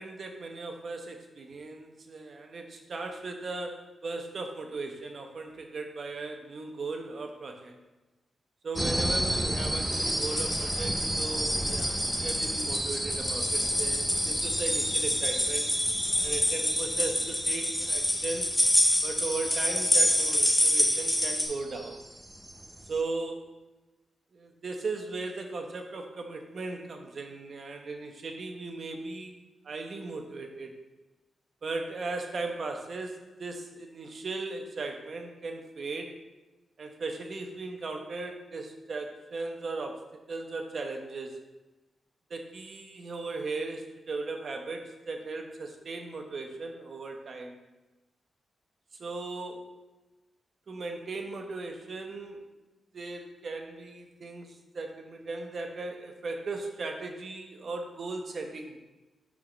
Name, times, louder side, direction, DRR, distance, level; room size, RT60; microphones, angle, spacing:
voice 1, 0.0-7.8 8.6-15.7 16.2-18.5 19.0-22.0 22.9-23.6 24.3-30.7 31.6-36.2 36.8-41.4 42.3-47.6 49.0-49.6 50.7-52.4 52.9-58.8, right 3 dB, 45° right, 4 dB, 0.9 m, -37 dB
sound 1, 8.8-23.0, right 1 dB, 5° right, 0.6 m, -34 dB
sound 2, 9.8-21.4, left 1 dB, 10° left, 1.5 m, -27 dB
6.2 x 4.8 x 5.9 m, 1.1 s
wide cardioid pair, 150°, 0 cm